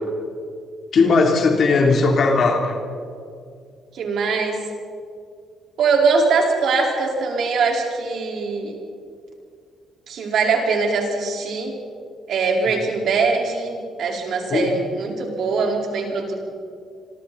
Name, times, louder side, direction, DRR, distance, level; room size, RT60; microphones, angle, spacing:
voice 1, 0.9-2.8 14.5-14.7, left 4 dB, 55° left, 2 dB, 3.4 m, -17 dB
voice 2, 3.9-4.6 5.8-8.8 10.1-11.7 12.3-16.3, right 4 dB, 70° right, 0 dB, 4.6 m, -22 dB
26.5 x 25.0 x 4.3 m, 2.3 s
cardioid pair, 90°, 0 cm